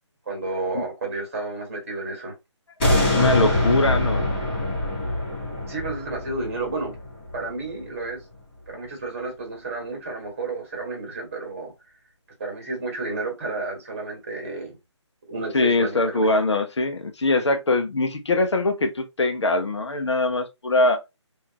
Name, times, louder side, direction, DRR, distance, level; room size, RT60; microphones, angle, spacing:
voice 1, 0.2-2.3 5.6-7.0 7.3-8.2 8.7-11.7 12.4-14.8 15.3-16.3, right 3 dB, 30° right, 1.8 m, -31 dB
sound 1, 2.8-7.9 8.4-8.5, left 2 dB, 20° left, 1.6 m, -24 dB
voice 2, 3.1-4.4 15.5-21.0, left 2 dB, 65° left, 0.9 m, -22 dB
4.0 x 2.7 x 3.0 m
figure-of-eight pair, 165°, 16 cm